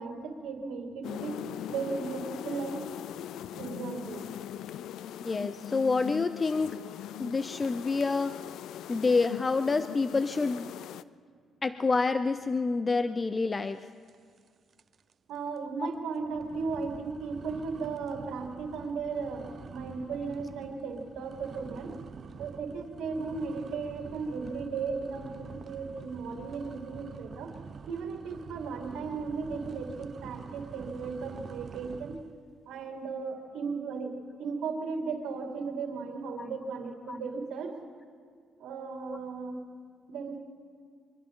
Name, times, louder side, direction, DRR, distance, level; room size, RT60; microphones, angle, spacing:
voice 1, 0.0-1.3 1.7-2.9 3.5-4.2 15.3-22.0 22.4-27.5 27.9-32.2 32.7-37.8 38.6-39.6 40.1-40.4, right 4 dB, 85° right, 2 dB, 2.4 m, -36 dB
sound 1, 1.0-11.0, left 11 dB, 80° left, 0.4 m, -40 dB
voice 2, 5.2-6.7 7.2-8.3 8.9-10.7 11.6-13.8 36.4-36.5 37.1-37.2 39.1-39.2, left 4 dB, 30° left, 11 dB, 0.5 m, -28 dB
sound 2, 14.1-14.5 14.7-15.1 15.6-15.7 16.2-32.4, right 6 dB, 50° right, 0.6 m, -46 dB
28.5 x 24.0 x 3.8 m, 2.1 s
cardioid pair, 90°, 0 cm